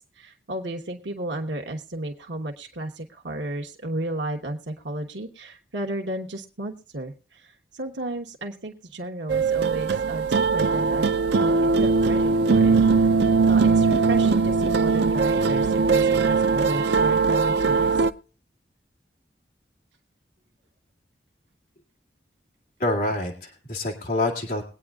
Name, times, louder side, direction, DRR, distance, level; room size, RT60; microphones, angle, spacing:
voice 1, 0.2-11.1 11.4-13.2 13.5-17.9, right 1 dB, 90° right, 2 dB, 1.1 m, -33 dB
sound 1, 9.3-18.1, right 4 dB, 70° right, 0.5 m, -20 dB
voice 2, 22.8-24.6, left 2 dB, 50° left, -1 dB, 2.2 m, -26 dB
21.5 x 9.0 x 2.3 m, 0.36 s
head